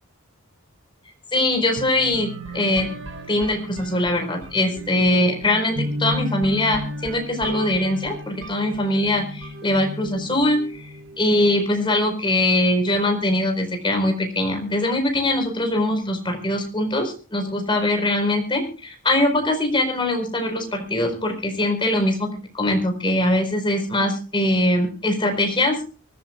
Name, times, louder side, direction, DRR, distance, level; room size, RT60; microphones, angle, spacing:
voice 1, 1.3-3.0 3.3-25.8, left 1 dB, 25° left, 4 dB, 4.6 m, -22 dB
sound 1, 1.8-11.6, equal, 70° right, 4.2 m, -34 dB
24.0 x 14.0 x 2.5 m, 0.37 s
head